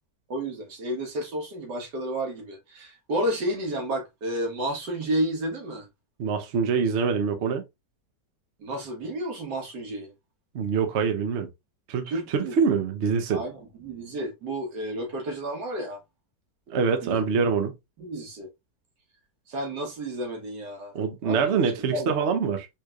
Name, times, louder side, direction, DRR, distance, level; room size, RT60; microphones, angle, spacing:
voice 1, 0.3-5.9 8.6-10.1 12.1-12.8 13.3-16.0 17.0-17.2 18.0-18.5 19.5-22.1, right 1 dB, 85° right, 2.0 m, -31 dB
voice 2, 6.2-7.6 10.5-11.5 11.9-13.4 16.7-17.7 20.9-22.7, right 5 dB, 55° right, 0.9 m, -25 dB
4.5 x 3.2 x 2.3 m
omnidirectional pair, 1.8 m